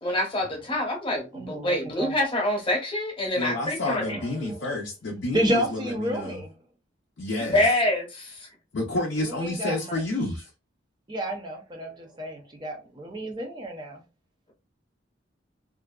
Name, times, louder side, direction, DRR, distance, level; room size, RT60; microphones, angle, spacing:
voice 1, 0.0-4.2 7.5-8.5, left 1 dB, 25° left, 0.9 m, -26 dB
voice 2, 1.3-2.1 4.0-4.7 5.3-6.5 9.2-10.0 11.1-14.0, equal, 20° right, 0.6 m, -31 dB
voice 3, 3.4-6.4 7.2-7.6 8.7-10.5, left 2 dB, 65° left, 0.5 m, -30 dB
2.5 x 2.2 x 2.3 m
head